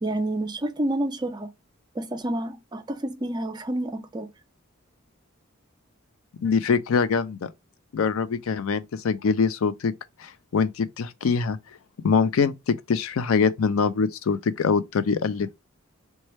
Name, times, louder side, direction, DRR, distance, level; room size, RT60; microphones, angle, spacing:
voice 1, 0.0-1.5 2.0-4.3, right 1 dB, 20° right, 0.4 m, -29 dB
voice 2, 6.4-7.5 7.9-9.9 10.2-11.6 12.0-15.5, left 5 dB, 80° left, 0.4 m, -24 dB
3.2 x 2.2 x 4.1 m
head